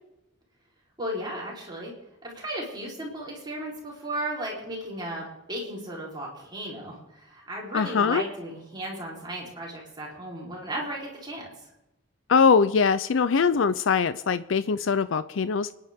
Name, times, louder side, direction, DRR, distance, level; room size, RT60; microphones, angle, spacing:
voice 1, 1.0-1.9 2.2-11.4, right 1 dB, 25° right, -3 dB, 3.9 m, -35 dB
voice 2, 7.7-8.2 12.3-15.7, left 5 dB, 80° left, 13 dB, 0.5 m, -22 dB
29.5 x 10.5 x 3.6 m, 0.96 s
head